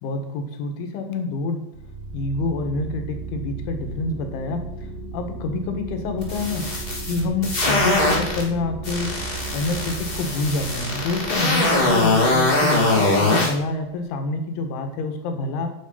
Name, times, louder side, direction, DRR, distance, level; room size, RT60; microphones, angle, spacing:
voice 1, 0.0-1.6 2.1-4.9 5.1-6.7 7.0-9.2 9.5-15.7, left 3 dB, 85° left, 5 dB, 4.0 m, -27 dB
sound 1, 1.7-14.0, right 3 dB, 75° right, 2.2 m, -36 dB
sound 2, 6.2-8.4 8.8-13.5, left 2 dB, 15° left, 1.9 m, -21 dB
9.2 x 9.0 x 5.7 m, 0.80 s
omnidirectional pair, 5.3 m